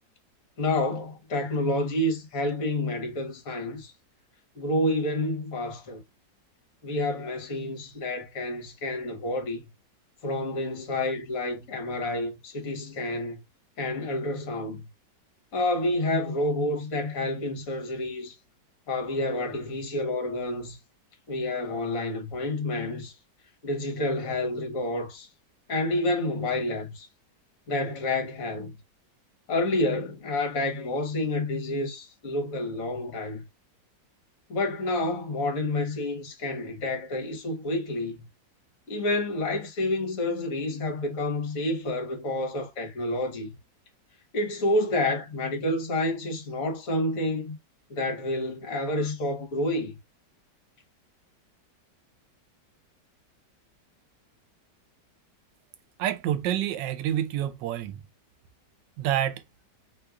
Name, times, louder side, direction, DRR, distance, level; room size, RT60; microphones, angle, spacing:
voice 1, 0.6-3.9 4.5-6.0 6.8-9.6 10.2-13.4 13.8-14.9 15.5-18.4 18.9-20.8 21.3-23.1 23.6-25.3 25.7-27.1 27.7-28.7 29.5-33.4 34.5-38.2 38.9-43.5 44.3-47.6 47.9-50.0, left 1 dB, 55° left, 1.3 m, -29 dB
voice 2, 56.0-58.0 59.0-59.4, right 11 dB, 80° right, 1.2 m, -28 dB
3.1 x 2.3 x 3.4 m
omnidirectional pair, 1.9 m